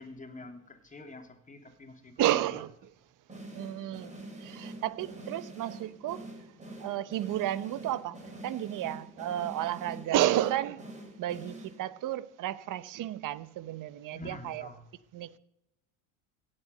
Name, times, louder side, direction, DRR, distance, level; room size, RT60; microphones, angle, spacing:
voice 1, 0.0-2.6 14.1-14.9, left 2 dB, 20° left, 2.7 m, -47 dB
voice 2, 2.2-2.7 3.5-6.2 6.8-8.2 8.4-10.8 11.2-14.7 15.1-15.4, right 13 dB, 50° right, 0.9 m, -32 dB
sound 1, 3.3-12.1, right 1 dB, 15° right, 5.6 m, -46 dB
16.5 x 7.7 x 7.8 m
supercardioid pair, 85°, 40 cm